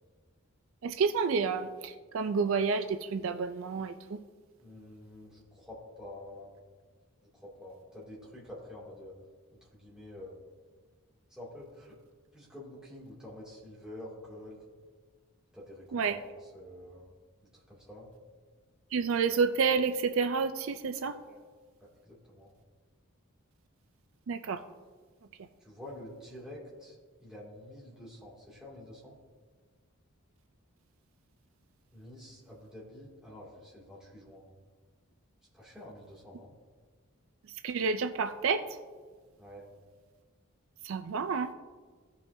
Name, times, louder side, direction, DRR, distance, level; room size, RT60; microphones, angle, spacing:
voice 1, 0.8-4.2 15.9-16.2 18.9-21.2 24.3-24.6 37.6-38.7 40.8-41.5, right 5 dB, 70° right, 10 dB, 0.4 m, -29 dB
voice 2, 4.6-6.5 7.3-9.1 9.6-10.4 11.3-12.0 12.3-14.6 15.5-17.0 17.4-18.1 21.3-21.4 21.8-22.5 25.6-29.2 31.9-34.4 35.5-36.5 39.4-39.7, left 1 dB, 5° right, -7 dB, 2.3 m, -48 dB
16.5 x 5.6 x 2.7 m, 1.5 s
head